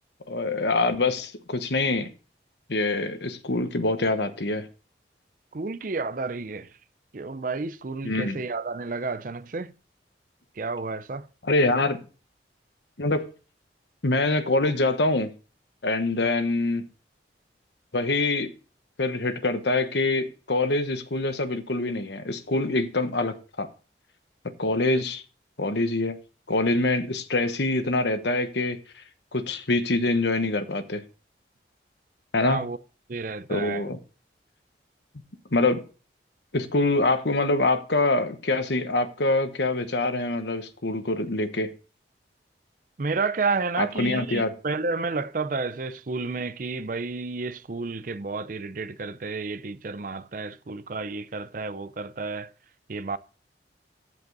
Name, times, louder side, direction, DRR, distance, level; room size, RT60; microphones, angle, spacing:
voice 1, 0.3-2.1 2.7-4.7 8.0-8.4 11.4-12.0 13.0-13.3 14.0-15.3 15.8-16.8 17.9-18.5 19.0-23.7 24.6-25.2 25.6-26.2 26.5-28.8 29.3-31.0 32.3-32.6 33.5-34.0 35.5-35.8 36.5-41.7 43.8-44.5, left 2 dB, 70° left, 1.1 m, -25 dB
voice 2, 5.5-6.7 7.1-9.7 10.6-11.3 24.9-25.0 32.4-32.8 33.1-33.8 43.0-52.5 52.9-53.2, right 4 dB, 45° right, 0.5 m, -31 dB
14.5 x 5.3 x 4.0 m
head